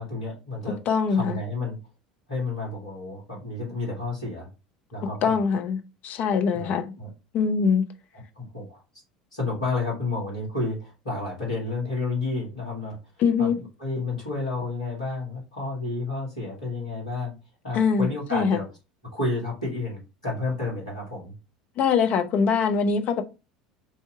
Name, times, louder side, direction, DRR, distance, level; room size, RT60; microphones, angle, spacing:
voice 1, 0.0-0.8 1.1-1.8 2.3-4.5 4.9-5.4 6.5-7.1 8.4-8.8 9.3-13.0 13.4-13.5 13.8-17.3 17.6-18.7 19.1-21.3, left 3 dB, 80° left, 2.2 m, -31 dB
voice 2, 0.9-1.4 5.2-6.9 7.3-7.9 13.2-13.6 17.7-18.6 21.8-23.2, left 6 dB, 45° left, 0.7 m, -23 dB
3.4 x 2.8 x 4.5 m
figure-of-eight pair, 70°, 4 cm